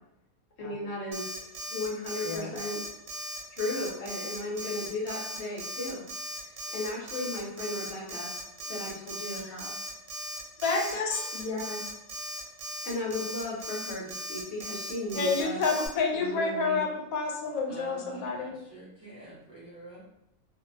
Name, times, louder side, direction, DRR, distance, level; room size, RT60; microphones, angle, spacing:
voice 1, 0.6-2.8 3.6-6.0 6.7-8.3 8.7-9.7 11.3-11.8 12.8-15.6 16.1-16.8, left 2 dB, 60° left, -3 dB, 0.9 m, -35 dB
Alarm, 1.1-15.9, equal, 70° right, 1.0 m, -38 dB
voice 2, 10.6-11.4 15.2-18.5, left 4 dB, 90° left, 1 dB, 1.0 m, -29 dB
voice 3, 17.7-20.1, right 1 dB, 25° right, -10 dB, 0.5 m, -47 dB
2.6 x 2.0 x 2.6 m, 0.83 s
omnidirectional pair, 1.4 m